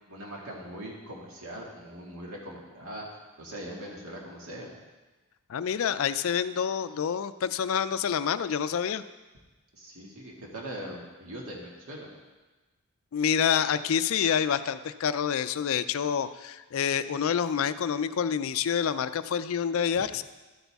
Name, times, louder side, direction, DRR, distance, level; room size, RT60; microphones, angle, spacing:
voice 1, 0.1-3.1 3.4-4.7 9.7-12.1 19.9-20.0, right 1 dB, 70° right, -2 dB, 2.1 m, -41 dB
voice 2, 5.5-9.0 13.1-20.2, left 8 dB, 65° left, 13 dB, 0.4 m, -27 dB
12.5 x 8.1 x 3.5 m, 1.2 s
head